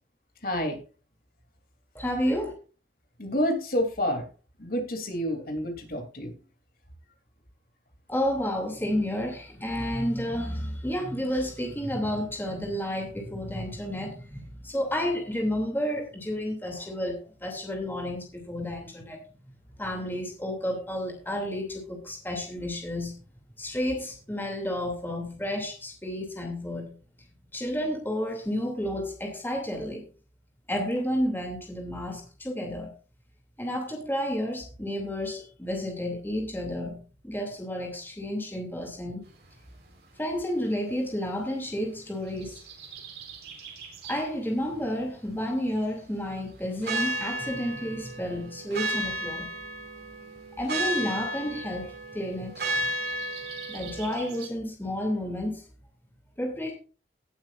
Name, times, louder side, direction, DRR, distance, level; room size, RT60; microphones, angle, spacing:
voice 1, 0.4-0.8 3.2-4.2 4.6-6.3, equal, 50° left, 4 dB, 3.2 m, -28 dB
voice 2, 1.9-2.5 8.1-19.2 19.8-23.1 23.6-26.9 27.5-30.0 30.7-32.9 33.6-39.2 40.2-42.6 44.1-49.5 50.6-52.6 53.7-55.6 56.4-56.7, equal, 10° left, 1 dB, 2.8 m, -31 dB
sound 1, 42.3-44.3 46.8-54.5, right 1 dB, 60° right, 4.3 m, -34 dB
18.5 x 8.7 x 2.5 m, 0.36 s
head